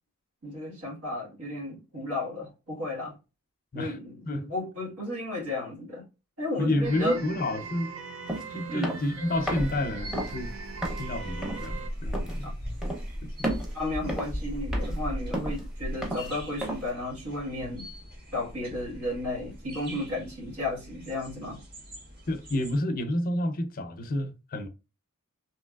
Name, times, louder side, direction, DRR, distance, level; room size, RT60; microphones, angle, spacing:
voice 1, 0.4-3.2 3.7-6.1 6.4-7.3 8.7-9.0 12.4-12.5 13.7-17.9 18.3-21.6, left 1 dB, 80° right, 1.6 m, -33 dB
voice 2, 6.6-8.0 8.5-10.5 11.0-12.6 13.2-13.6 22.3-24.7, left 1 dB, 40° left, 0.5 m, -30 dB
sound 1, 6.8-11.9, right 5 dB, 65° right, 0.5 m, -40 dB
sound 2, 8.3-8.4 8.8-9.1 9.5-9.7 10.1-10.4 10.8-11.0 11.4-11.7 12.1-12.4 12.8-13.1 13.4-13.7 14.1-14.4 14.7-15.0 15.3-15.7 16.0-16.3 16.6-16.9, right 1 dB, 5° right, 0.7 m, -33 dB
sound 3, 9.3-22.8, equal, 45° right, 1.5 m, -38 dB
3.1 x 2.8 x 2.3 m
head